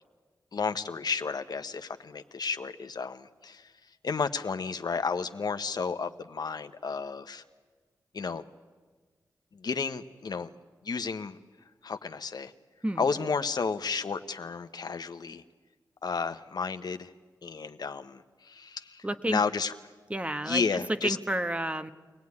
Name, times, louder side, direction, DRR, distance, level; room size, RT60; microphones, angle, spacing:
voice 1, 0.5-3.7 4.0-7.4 8.1-8.4 9.5-10.5 10.8-11.4 11.8-12.5 13.0-15.4 16.0-17.1 17.4-19.7 20.4-21.2, left 5 dB, 65° left, 9 dB, 1.0 m, -32 dB
voice 2, 19.0-19.4 20.1-21.9, right 1 dB, 15° right, 9 dB, 1.2 m, -30 dB
24.5 x 17.0 x 9.7 m, 1.4 s
cardioid pair, 40°, 7 cm